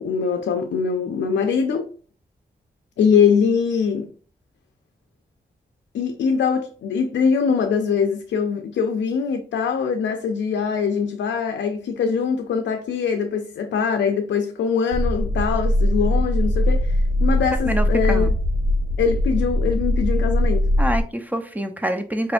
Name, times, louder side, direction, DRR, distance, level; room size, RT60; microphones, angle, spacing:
voice 1, 0.0-1.9 3.0-4.1 5.9-18.3 19.0-20.7, left 6 dB, 85° left, 0.4 m, -22 dB
sound 1, 14.9-21.0, left 1 dB, 80° right, 0.9 m, -21 dB
voice 2, 17.6-18.3 20.8-22.3, right 1 dB, 10° right, 0.8 m, -25 dB
4.8 x 3.2 x 2.5 m
cardioid pair, 40°, 18 cm